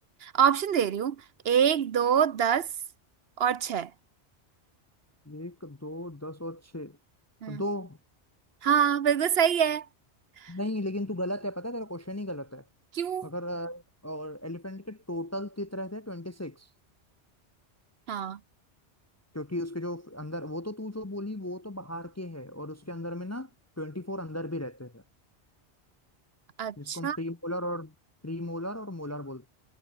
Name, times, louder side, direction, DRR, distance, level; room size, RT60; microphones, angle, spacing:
voice 1, 0.2-1.2 1.4-2.7 3.4-3.9 7.4-7.6 8.6-9.9 12.9-13.3 18.1-18.4 26.6-27.2, right 8 dB, 65° right, 1.0 m, -25 dB
voice 2, 5.3-7.0 7.5-8.0 10.5-12.6 13.2-16.7 19.3-23.5 23.8-25.0 26.8-27.9 28.2-29.5, left 1 dB, 15° left, 0.6 m, -36 dB
omnidirectional pair, 1.2 m